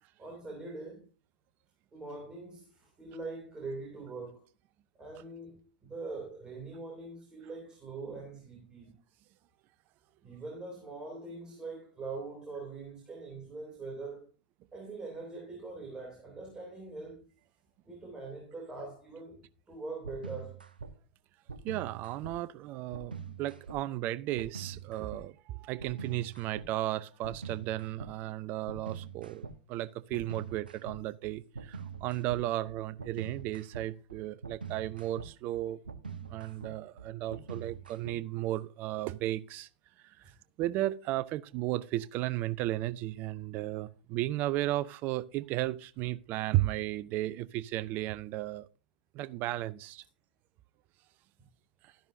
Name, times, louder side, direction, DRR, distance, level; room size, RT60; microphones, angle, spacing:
voice 1, 0.2-1.1 1.9-4.5 5.0-9.0 10.2-14.3 14.7-17.3 17.9-20.6, right 3 dB, 15° right, 2.8 m, -43 dB
sound 1, 20.0-20.9 21.5-22.4 22.9-23.8 24.4-25.2 25.8-26.7 27.2-28.1 28.7-29.6 30.1-38.4, right 5 dB, 80° right, 0.9 m, -44 dB
voice 2, 21.6-35.8 36.3-39.7 40.6-48.7 49.1-50.0, right 15 dB, 40° right, 0.6 m, -34 dB
12.5 x 10.5 x 2.7 m
figure-of-eight pair, 95°, 5 cm